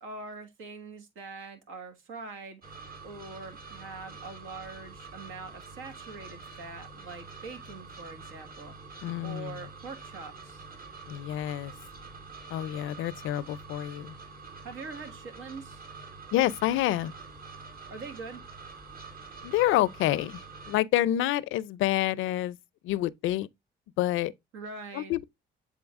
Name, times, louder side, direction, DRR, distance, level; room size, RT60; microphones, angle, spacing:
voice 1, 0.0-8.7 9.2-10.6 14.6-15.9 17.9-18.4 24.5-25.1, right 3 dB, 85° right, 1.7 m, -43 dB
sound 1, 2.6-20.8, right 4 dB, 45° right, 2.1 m, -46 dB
voice 2, 9.0-9.6 11.1-11.7 12.5-14.2 16.3-17.1 19.4-20.4 20.7-22.6 22.8-23.5 24.0-24.3 24.9-25.2, left 14 dB, 85° left, 0.4 m, -28 dB
7.8 x 3.8 x 3.5 m
cardioid pair, 90°, 20 cm